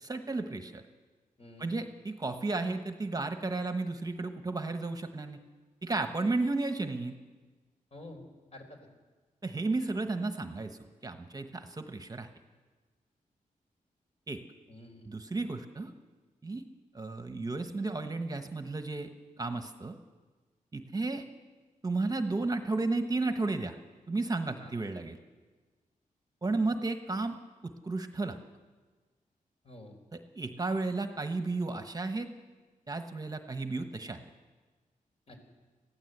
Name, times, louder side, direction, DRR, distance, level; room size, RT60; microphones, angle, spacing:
voice 1, 0.0-0.8 1.6-5.4 5.8-7.2 9.4-12.3 14.3-14.4 15.1-15.9 16.4-16.6 16.9-19.1 19.4-20.0 20.7-21.2 21.8-23.8 24.1-25.2 26.4-27.4 27.6-28.4 30.1-32.3 32.9-34.2, right 3 dB, 25° right, 7 dB, 1.1 m, -33 dB
voice 2, 1.4-1.8 7.9-8.2 8.5-8.8 14.7-15.1 24.6-24.7 29.6-30.0 35.3-35.4, left 1 dB, 45° left, 3 dB, 4.2 m, -49 dB
21.5 x 15.5 x 8.0 m, 1.3 s
wide cardioid pair, 105°, 14 cm